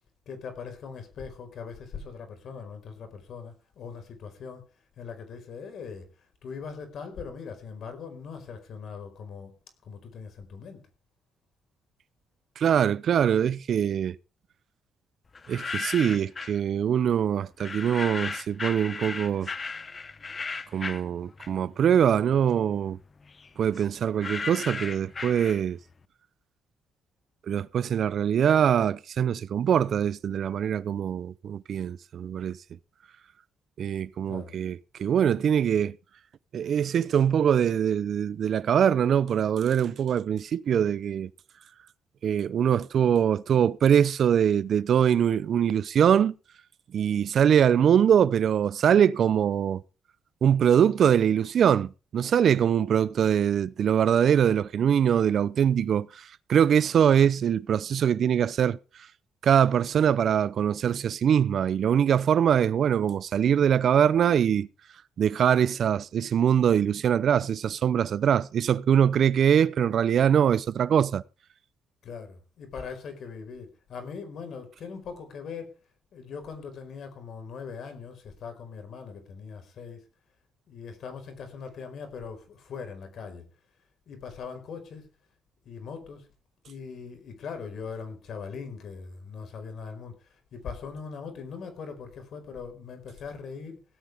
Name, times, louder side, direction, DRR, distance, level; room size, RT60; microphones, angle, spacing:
voice 1, 0.2-4.6 5.0-9.5 9.8-10.8 34.3-34.5 72.0-75.8 76.1-80.1 80.7-83.4 84.1-85.1 85.6-86.3 86.6-93.8, left 5 dB, 65° left, 4.9 m, -40 dB
voice 2, 12.6-14.2 15.5-19.5 20.7-23.0 23.6-25.8 27.5-32.6 33.8-35.9 36.5-41.3 42.2-46.3 46.9-49.8 50.4-58.8 59.4-64.7 65.2-71.2, right 8 dB, 60° right, 0.6 m, -23 dB
sound 1, 15.4-16.6 17.6-21.8 22.2-25.9, left 4 dB, 35° left, 1.0 m, -36 dB
17.0 x 13.5 x 3.6 m
cardioid pair, 90°, 0 cm